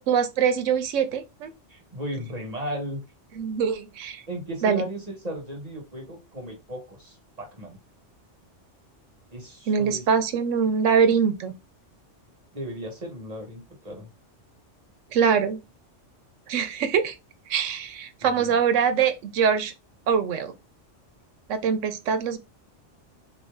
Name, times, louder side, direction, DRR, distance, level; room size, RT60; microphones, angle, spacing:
voice 1, 0.0-1.5 3.4-4.2 4.6-4.9 9.7-11.5 15.1-15.6 16.5-17.1 17.5-19.7 20.1-20.5 21.5-22.4, right 7 dB, 90° right, 1.0 m, -23 dB
voice 2, 1.7-3.0 4.3-7.8 9.3-10.0 12.5-14.1 18.2-18.6, equal, 35° right, 1.3 m, -36 dB
3.3 x 2.6 x 3.5 m
omnidirectional pair, 1.3 m